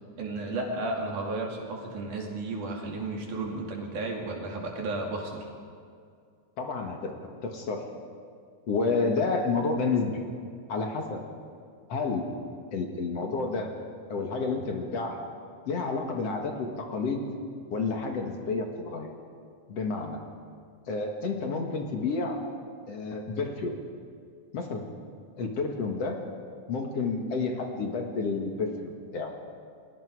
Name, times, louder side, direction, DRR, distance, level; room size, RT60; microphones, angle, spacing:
voice 1, 0.2-5.5, right 2 dB, 80° right, -1 dB, 4.2 m, -33 dB
voice 2, 6.6-7.1 7.4-7.8 8.7-10.2 10.7-11.2 11.9-12.3 12.7-13.7 14.1-15.2 15.7-17.2 17.7-19.1 19.7-20.2 20.9-22.4 22.9-23.7 24.5-24.8 25.4-26.2 26.7-29.3, left 4 dB, 55° left, 2 dB, 2.6 m, -30 dB
29.5 x 21.0 x 4.9 m, 2.2 s
omnidirectional pair, 3.5 m